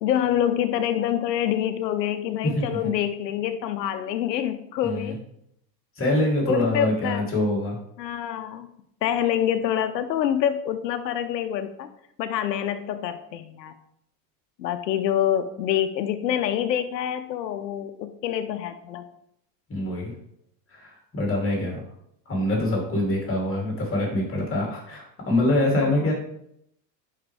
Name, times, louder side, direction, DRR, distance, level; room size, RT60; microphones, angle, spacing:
voice 1, 0.0-5.2 6.5-7.2 8.0-8.7 9.0-11.9 12.2-13.7 14.6-19.0 25.8-26.1, left 10 dB, 85° left, 9 dB, 0.8 m, -26 dB
voice 2, 2.4-2.8 4.8-5.2 5.9-7.8 19.7-20.1 20.7-21.8 22.3-26.1, left 1 dB, 25° left, -1 dB, 3.0 m, -25 dB
11.0 x 4.8 x 3.3 m, 0.75 s
hypercardioid pair, 95°, 49 cm